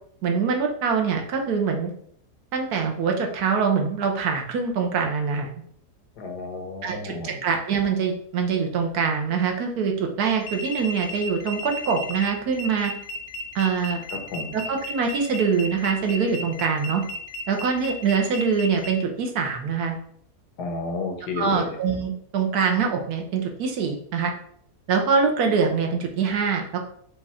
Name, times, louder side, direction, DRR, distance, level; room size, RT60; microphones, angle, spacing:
voice 1, 0.2-1.9 2.5-5.5 6.8-12.9 13.5-14.0 14.5-17.0 17.5-20.0 21.4-24.3 24.9-26.9, right 5 dB, 75° right, 3 dB, 1.3 m, -24 dB
voice 2, 6.2-7.4 14.1-14.5 20.6-21.8, left 3 dB, 85° left, 4 dB, 1.5 m, -32 dB
sound 1, 10.4-18.9, left 1 dB, 60° left, 0.9 m, -34 dB
5.1 x 2.4 x 4.2 m, 0.64 s
omnidirectional pair, 1.7 m